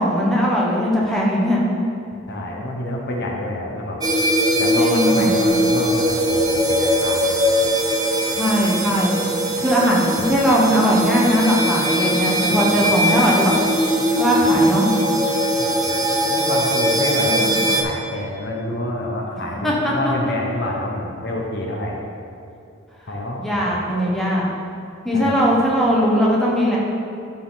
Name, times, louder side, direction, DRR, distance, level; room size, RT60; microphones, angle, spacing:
voice 1, 0.0-1.6 4.8-5.4 8.3-9.2 9.6-13.5 14.2-14.9 17.2-17.6 19.6-20.1 23.4-24.4 25.0-26.8, equal, ahead, -5 dB, 1.1 m, -19 dB
voice 2, 2.3-4.0 4.5-7.7 15.6-22.0 23.1-24.1 25.1-25.5, left 1 dB, 50° left, -1 dB, 1.0 m, -28 dB
sound 1, 4.0-17.8, equal, 15° right, 0.6 m, -20 dB
12.5 x 4.2 x 4.0 m, 2.7 s
head